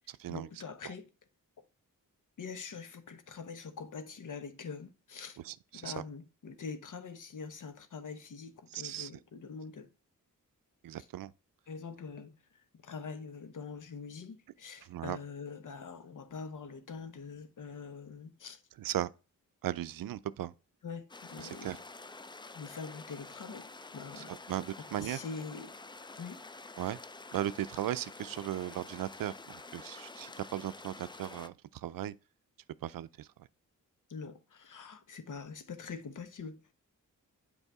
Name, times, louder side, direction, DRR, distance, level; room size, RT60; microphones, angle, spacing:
voice 1, 0.3-1.1 1.6-1.7 2.4-5.4 5.7-9.9 11.7-12.3 12.7-18.6 20.8-21.8 22.5-23.7 23.9-24.3 24.9-25.7 26.2-26.4 34.1-36.6, left 5 dB, 65° left, 1.0 m, -44 dB
voice 2, 5.4-6.0 8.7-9.1 10.8-11.3 14.8-15.2 18.8-19.1 19.6-20.5 21.4-21.8 24.2-25.2 26.8-27.0 27.3-32.1 32.8-33.3, right 12 dB, 80° right, 0.5 m, -37 dB
sound 1, 21.1-31.5, left 3 dB, 15° left, 0.4 m, -49 dB
8.1 x 4.8 x 3.5 m
cardioid pair, 75°, 33 cm